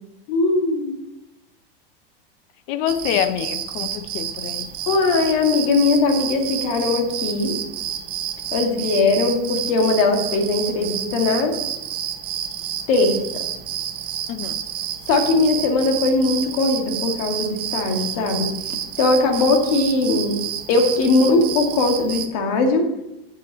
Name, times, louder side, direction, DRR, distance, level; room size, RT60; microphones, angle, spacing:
voice 1, 0.3-1.0 4.9-7.6 8.5-11.6 12.9-13.4 15.1-18.5 19.0-20.4 20.7-22.9, left 3 dB, 40° left, 3 dB, 2.1 m, -20 dB
voice 2, 2.7-4.7 14.3-14.6, left 10 dB, 25° left, 11 dB, 0.6 m, -26 dB
sound 1, 2.9-22.3, right 10 dB, 20° right, 0.5 m, -30 dB
9.3 x 6.6 x 7.8 m, 0.91 s
supercardioid pair, 180°, 29 cm